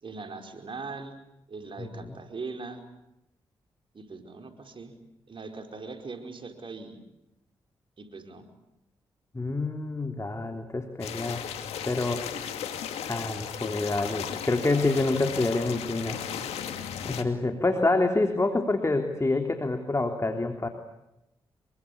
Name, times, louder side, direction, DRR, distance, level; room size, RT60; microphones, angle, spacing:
voice 1, 0.0-1.1 1.5-2.8 3.9-4.9 5.3-7.0 8.0-8.4, right 4 dB, 55° right, 5 dB, 5.0 m, -40 dB
voice 2, 1.8-2.2 9.3-11.4 11.9-12.2 13.0-16.2 17.0-20.7, left 2 dB, 30° left, 5 dB, 3.5 m, -27 dB
sound 1, 11.0-17.2, left 9 dB, 85° left, 2.4 m, -35 dB
26.5 x 23.5 x 8.6 m, 0.91 s
supercardioid pair, 45°, 10 cm